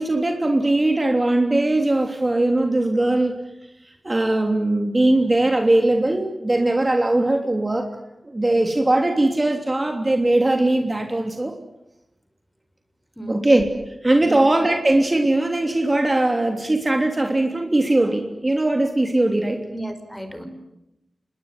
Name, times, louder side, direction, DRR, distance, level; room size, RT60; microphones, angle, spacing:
voice 1, 0.0-3.3 4.0-7.9 8.2-11.5 13.3-13.6 14.0-19.6, right 2 dB, 25° right, 4 dB, 3.2 m, -20 dB
voice 2, 19.7-20.5, right 1 dB, 5° left, 9 dB, 4.8 m, -34 dB
27.5 x 21.0 x 9.7 m, 0.91 s
wide cardioid pair, 85°, 0 cm